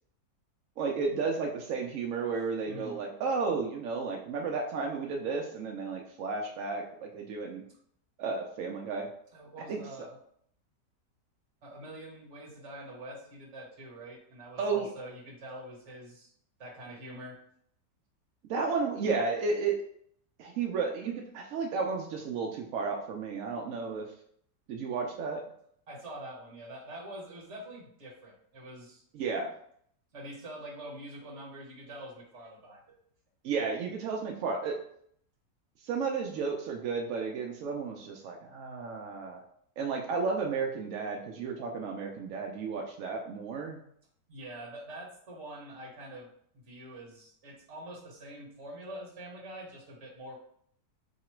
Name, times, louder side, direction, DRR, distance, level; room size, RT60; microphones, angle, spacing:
voice 1, 0.8-7.6 8.2-9.1 9.7-9.8 14.6-14.9 18.5-19.8 20.4-24.1 24.7-25.4 29.1-29.5 33.4-34.8 35.8-39.4 39.8-43.8, right 4 dB, 75° right, 1 dB, 0.7 m, -33 dB
voice 2, 2.7-3.0 9.3-10.2 11.6-16.3 16.6-17.4 25.9-29.0 30.1-32.8 44.3-50.4, right 1 dB, 45° right, -2 dB, 1.2 m, -45 dB
3.1 x 2.9 x 4.3 m, 0.66 s
omnidirectional pair, 1.9 m